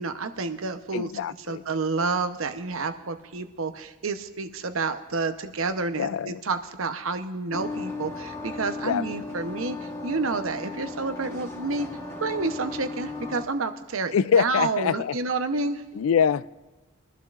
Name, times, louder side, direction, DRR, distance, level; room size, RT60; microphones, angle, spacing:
voice 1, 0.0-1.1 1.5-11.9 12.2-15.8, right 3 dB, 85° right, 0.9 m, -29 dB
voice 2, 0.9-1.6 6.0-6.4 8.9-9.0 14.1-15.2 15.9-16.4, left 7 dB, 80° left, 0.4 m, -24 dB
sound 1, 7.5-13.4, left 3 dB, 15° left, 1.2 m, -36 dB
22.5 x 12.0 x 2.5 m
head